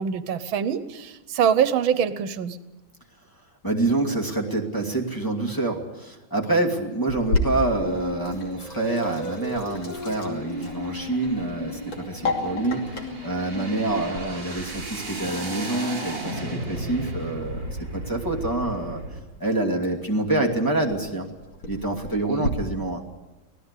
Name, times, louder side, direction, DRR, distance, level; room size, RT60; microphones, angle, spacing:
voice 1, 0.0-2.6 22.3-22.5, right 8 dB, 80° right, 13 dB, 1.7 m, -24 dB
voice 2, 3.6-12.9 13.2-19.0 19.4-21.3 21.6-23.0, right 2 dB, 10° left, 0 dB, 2.3 m, -26 dB
Sink (filling or washing), 7.1-22.5, left 2 dB, 70° left, 3.5 m, -35 dB
sound 1, 7.5-19.2, right 1 dB, 45° right, 4.8 m, -37 dB
sound 2, 7.7-8.2 8.6-14.2 14.9-17.9, left 2 dB, 50° left, 5.0 m, -38 dB
25.5 x 17.0 x 8.3 m, 1.1 s
omnidirectional pair, 2.2 m